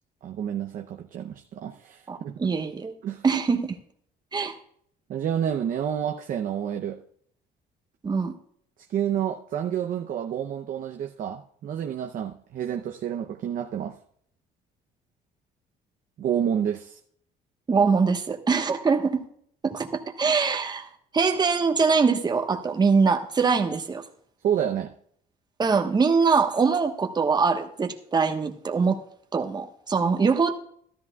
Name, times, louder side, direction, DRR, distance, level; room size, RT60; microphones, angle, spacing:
voice 1, 0.2-2.4 3.0-3.2 5.1-7.0 8.9-14.0 16.2-17.0 24.4-24.9, right 9 dB, 55° right, 4 dB, 0.7 m, -29 dB
voice 2, 2.1-2.9 3.2-3.8 4.3-4.5 8.0-8.3 17.7-19.2 19.6-20.9 21.1-24.0 25.6-29.0 29.3-30.5, right 5 dB, 25° right, 4 dB, 1.2 m, -23 dB
13.5 x 13.0 x 2.3 m, 0.65 s
cardioid pair, 110°, 17 cm